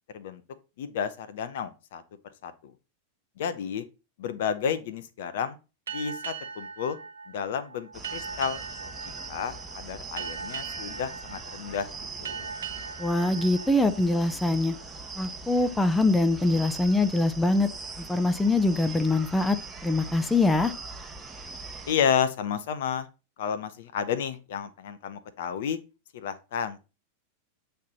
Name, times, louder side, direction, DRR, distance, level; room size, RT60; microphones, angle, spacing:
voice 1, 0.8-2.0 2.4-2.7 3.4-3.8 4.2-5.6 5.9-7.0 7.3-8.6 9.0-11.9 12.2-12.5 21.9-23.1 23.4-25.8 26.1-26.8, left 7 dB, 55° left, 11 dB, 0.8 m, -31 dB
sound 1, 5.9-15.0, right 6 dB, 65° right, 0.7 m, -40 dB
sound 2, 7.9-21.9, right 3 dB, 15° right, 1.0 m, -42 dB
voice 2, 13.0-14.8 15.2-17.7 18.0-19.6 19.8-20.7, left 2 dB, 5° left, 10 dB, 0.6 m, -23 dB
8.4 x 3.4 x 4.2 m, 0.30 s
figure-of-eight pair, 90°, 0 cm